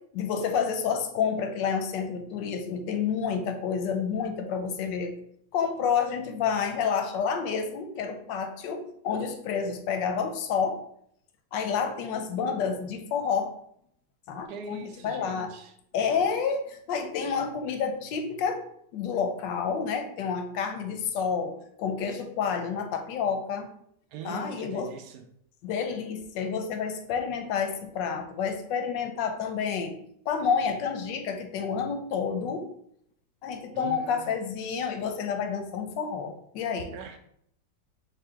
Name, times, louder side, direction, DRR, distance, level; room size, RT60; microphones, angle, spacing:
voice 1, 0.1-5.1 5.5-10.8 11.5-13.5 14.3-15.5 15.9-18.6 18.9-23.7 24.2-24.9 25.6-30.0 30.3-32.7 33.4-36.9, left 6 dB, 90° left, 5 dB, 1.3 m, -29 dB
voice 2, 14.5-15.7 24.1-25.2 33.7-34.3 36.9-37.2, right 4 dB, 70° right, 5 dB, 1.1 m, -41 dB
4.5 x 2.4 x 4.4 m, 0.70 s
omnidirectional pair, 1.9 m